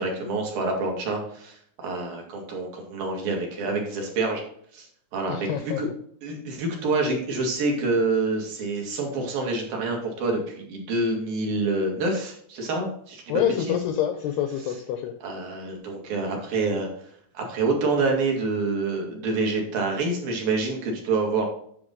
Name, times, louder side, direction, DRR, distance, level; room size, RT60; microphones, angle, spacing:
voice 1, 0.0-4.4 4.7-4.9 5.1-5.9 6.2-13.8 15.2-16.9 17.3-21.5, right 3 dB, 55° right, 1 dB, 3.3 m, -27 dB
voice 2, 5.3-5.8 13.3-15.1, left 10 dB, 80° left, 7 dB, 2.4 m, -27 dB
9.7 x 6.6 x 3.9 m, 0.63 s
omnidirectional pair, 5.6 m